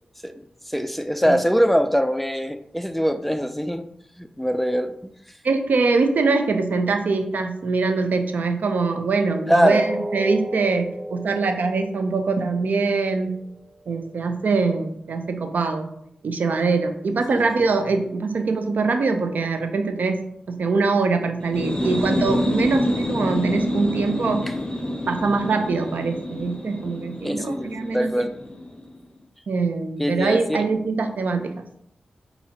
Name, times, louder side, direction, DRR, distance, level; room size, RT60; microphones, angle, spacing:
voice 1, 0.2-3.8 4.2-5.1 9.5-9.8 17.3-17.5 27.2-28.3 30.0-30.6, equal, 5° left, 8 dB, 0.3 m, -23 dB
voice 2, 5.4-13.3 13.9-15.9 16.2-24.5 25.1-28.3 29.5-31.6, right 4 dB, 75° right, 7 dB, 0.5 m, -23 dB
sound 1, 9.6-15.6 15.9-16.1 16.6-16.7, right 1 dB, 40° right, 0.9 m, -36 dB
sound 2, 21.4-28.9, left 1 dB, 25° left, 0.8 m, -27 dB
5.6 x 2.7 x 2.8 m, 0.74 s
cardioid pair, 55°, 3 cm